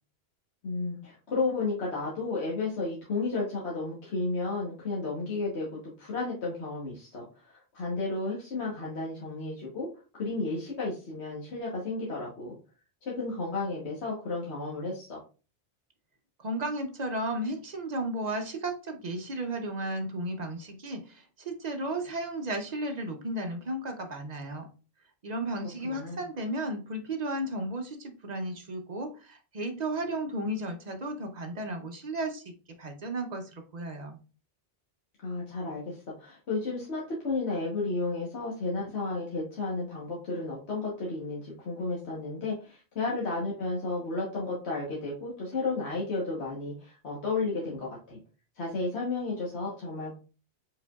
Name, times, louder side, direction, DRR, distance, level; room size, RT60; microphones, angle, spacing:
voice 1, 0.6-9.9 10.1-12.5 13.0-15.2 25.8-26.2 35.2-48.2 48.5-50.2, left 3 dB, 70° left, -4 dB, 1.4 m, -33 dB
voice 2, 16.4-24.7 25.2-32.5 32.8-34.2, right 1 dB, 45° right, 5 dB, 0.7 m, -34 dB
4.8 x 4.2 x 2.3 m, 0.34 s
omnidirectional pair, 1.1 m